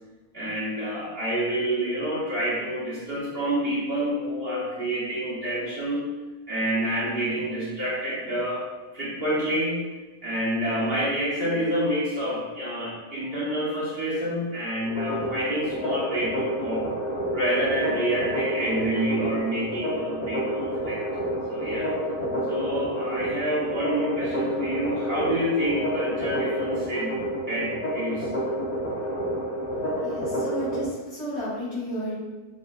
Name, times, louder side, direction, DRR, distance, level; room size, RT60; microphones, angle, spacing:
voice 1, 0.3-6.0 6.5-8.6 8.9-9.8 10.2-16.9 17.3-21.0 21.5-21.9 22.5-27.2 27.5-28.3, equal, 45° right, -7 dB, 1.0 m, -28 dB
sound 1, 14.8-30.8, equal, 35° left, 0.7 m, -29 dB
voice 2, 30.0-32.1, right 1 dB, 80° left, -8 dB, 1.9 m, -32 dB
6.1 x 2.4 x 2.3 m, 1.2 s
omnidirectional pair, 1.7 m